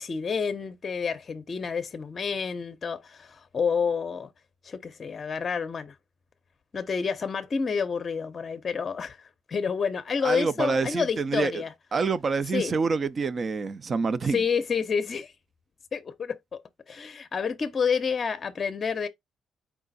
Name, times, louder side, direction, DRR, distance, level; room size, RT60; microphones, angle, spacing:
voice 1, 0.0-4.3 4.6-5.9 6.7-11.7 12.5-12.7 14.3-15.3 15.9-16.6 16.9-19.1, left 6 dB, 40° left, 0.6 m, -29 dB
voice 2, 10.2-11.6 11.9-14.4, right 4 dB, 40° right, 0.4 m, -27 dB
4.6 x 2.4 x 3.9 m
cardioid pair, 90°, 0 cm